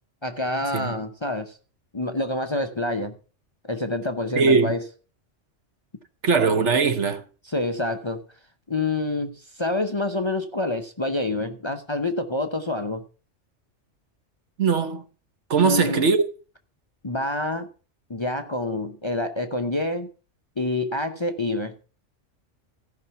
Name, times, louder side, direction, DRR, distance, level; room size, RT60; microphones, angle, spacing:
voice 1, 0.2-1.6 1.9-3.1 3.6-4.8 7.5-8.2 8.7-13.0 15.6-16.0 17.0-17.7 18.1-20.1 20.6-21.7, left 2 dB, 30° left, 0.7 m, -27 dB
voice 2, 4.4-4.7 6.2-7.2 14.6-15.0 15.5-16.2, right 5 dB, 70° right, 1.3 m, -20 dB
14.5 x 5.6 x 5.7 m
omnidirectional pair, 1.3 m